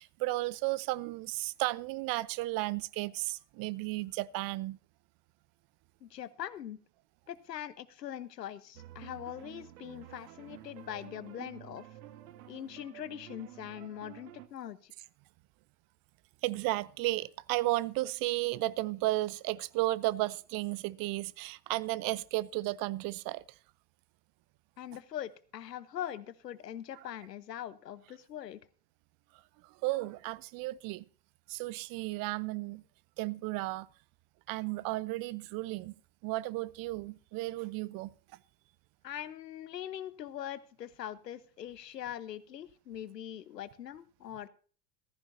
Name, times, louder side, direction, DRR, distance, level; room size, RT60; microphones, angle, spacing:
voice 1, 0.0-4.8 16.4-23.4 29.8-31.0 31.5-32.8 33.2-33.9 34.5-35.9 36.2-38.1, right 19 dB, 45° right, 0.7 m, -34 dB
voice 2, 6.0-6.8 7.3-11.9 12.5-14.9 24.8-28.6 39.0-44.5, left 10 dB, 80° left, 1.0 m, -42 dB
sound 1, 8.7-14.5, right 13 dB, 70° right, 1.3 m, -51 dB
15.0 x 14.0 x 2.7 m
figure-of-eight pair, 75°, 48 cm